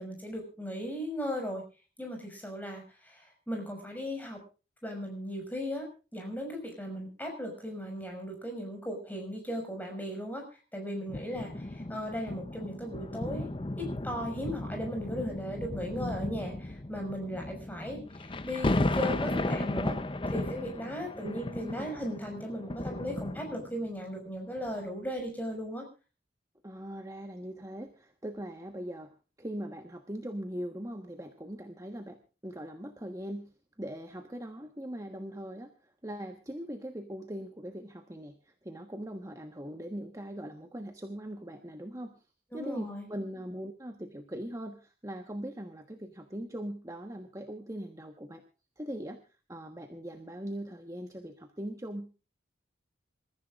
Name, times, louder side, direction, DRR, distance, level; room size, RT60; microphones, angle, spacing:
voice 1, 0.0-1.6 2.0-4.4 4.8-5.9 6.1-10.5 10.7-13.5 13.8-20.0 20.3-25.9 42.5-43.1, equal, 10° left, 2 dB, 5.7 m, -37 dB
sound 1, 11.1-23.9 24.6-24.7, left 2 dB, 25° left, 0.7 m, -35 dB
voice 2, 21.2-21.9 26.6-29.1 29.4-33.5 33.8-42.2 42.5-48.4 48.8-49.2 49.5-52.2, equal, 15° right, 4 dB, 1.3 m, -41 dB
27.0 x 14.5 x 2.5 m, 0.33 s
head